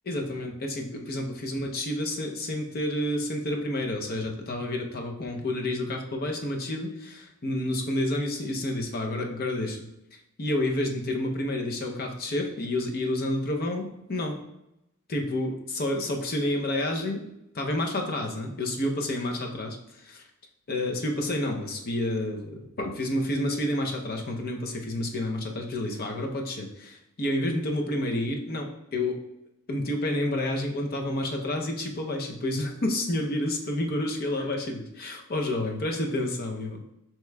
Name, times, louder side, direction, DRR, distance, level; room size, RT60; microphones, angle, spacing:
voice 1, 0.1-9.9 10.4-14.4 15.1-17.3 17.5-20.3 20.7-29.2 29.7-36.8, left 1 dB, 45° left, 2 dB, 0.6 m, -29 dB
7.9 x 3.0 x 2.2 m, 0.85 s
head